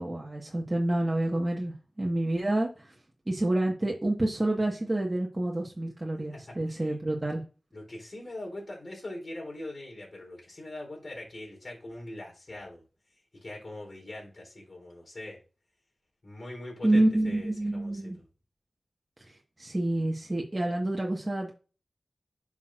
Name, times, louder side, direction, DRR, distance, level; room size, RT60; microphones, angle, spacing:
voice 1, 0.0-2.9 3.3-7.4 16.8-18.2 19.6-21.5, right 1 dB, 30° right, -1 dB, 1.5 m, -28 dB
voice 2, 6.3-7.0 7.7-12.8 13.3-15.4 16.2-18.2, left 1 dB, 55° left, -1 dB, 3.7 m, -42 dB
10.5 x 6.1 x 2.5 m, 0.35 s
wide cardioid pair, 60°, 0 cm